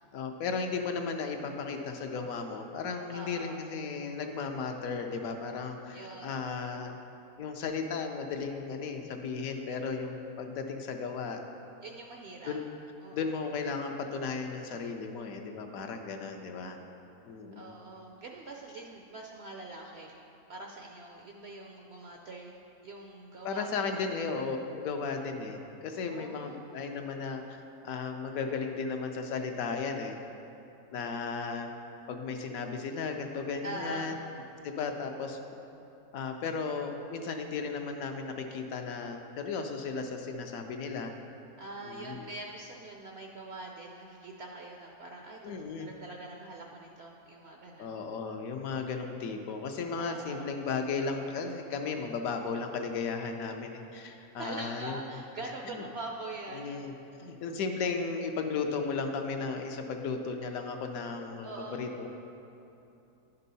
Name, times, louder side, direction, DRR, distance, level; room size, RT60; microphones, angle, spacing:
voice 1, 0.1-6.9 7.4-11.4 12.5-12.7 13.1-16.8 17.3-17.7 23.4-27.6 27.8-30.2 30.9-31.7 32.1-34.2 34.6-35.4 36.1-41.1 41.8-42.2 45.4-45.9 47.8-55.0 55.7-55.8 56.5-56.9 57.2-62.1, left 5 dB, 75° left, 4 dB, 1.0 m, -35 dB
voice 2, 3.1-3.6 5.9-6.4 11.8-12.6 13.0-13.3 17.6-20.1 20.5-23.7 23.9-24.1 26.0-26.6 33.6-34.2 41.6-45.5 45.8-47.9 50.0-50.5 54.4-56.7 61.4-61.8, right 2 dB, 65° right, 0 dB, 0.6 m, -43 dB
10.5 x 5.5 x 4.0 m, 2.9 s
omnidirectional pair, 1.6 m